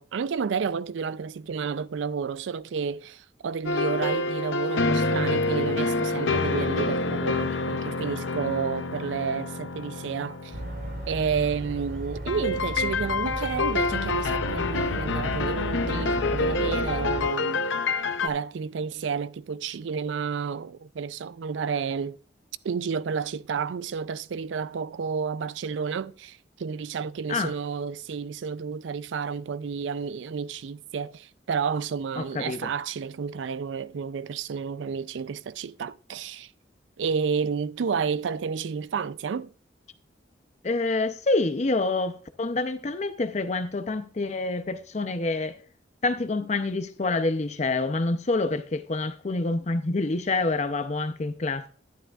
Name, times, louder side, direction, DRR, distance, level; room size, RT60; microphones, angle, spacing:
voice 1, 0.0-10.6 11.1-17.7 18.2-22.2 22.6-36.5 37.0-39.5, right 6 dB, 80° right, 0.4 m, -31 dB
sound 1, 3.7-11.4 12.3-18.3, left 3 dB, 85° left, 0.6 m, -27 dB
sound 2, 10.5-17.3, right 1 dB, 60° right, 3.5 m, -35 dB
voice 2, 32.2-32.7 40.6-45.6 46.0-51.7, left 3 dB, 40° left, 0.6 m, -27 dB
11.5 x 10.0 x 2.4 m
head